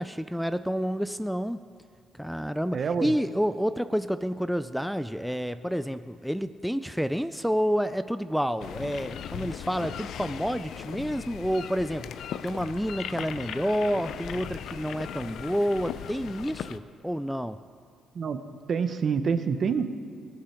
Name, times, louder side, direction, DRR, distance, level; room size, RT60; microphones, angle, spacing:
voice 1, 0.0-1.6 2.1-17.6, equal, ahead, 11 dB, 0.4 m, -29 dB
voice 2, 2.7-3.1 18.1-18.4 18.7-19.9, right 6 dB, 50° right, 10 dB, 0.9 m, -27 dB
sound 1, 8.6-16.8, left 9 dB, 75° left, 0.5 m, -38 dB
23.0 x 8.7 x 4.4 m, 2.2 s
cardioid pair, 85°, 0 cm